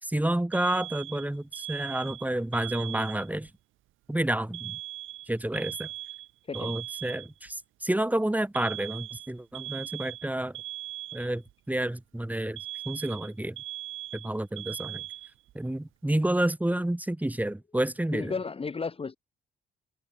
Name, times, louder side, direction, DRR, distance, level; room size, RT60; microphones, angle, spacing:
voice 1, 0.0-3.5 4.1-4.8 5.3-5.9 6.5-10.6 11.1-13.6 14.1-15.0 15.6-18.4, right 1 dB, 10° right, 5.1 m, -30 dB
Alarm, 0.5-3.5 4.5-7.5 8.5-11.5 12.6-15.5, right 14 dB, 85° right, 3.8 m, -40 dB
voice 2, 18.1-19.2, left 5 dB, 30° left, 1.7 m, -33 dB
cardioid pair, 90°, 20 cm